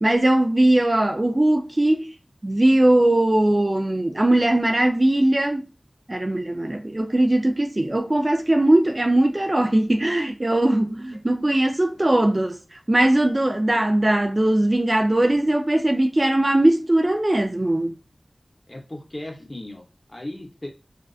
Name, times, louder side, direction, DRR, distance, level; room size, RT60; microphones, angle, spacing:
voice 1, 0.0-2.1 2.4-5.6 6.1-18.0, right 1 dB, 35° right, 0.4 m, -20 dB
voice 2, 18.7-20.7, left 1 dB, 35° left, 0.8 m, -37 dB
2.4 x 2.3 x 2.4 m
wide cardioid pair, 50°, 0 cm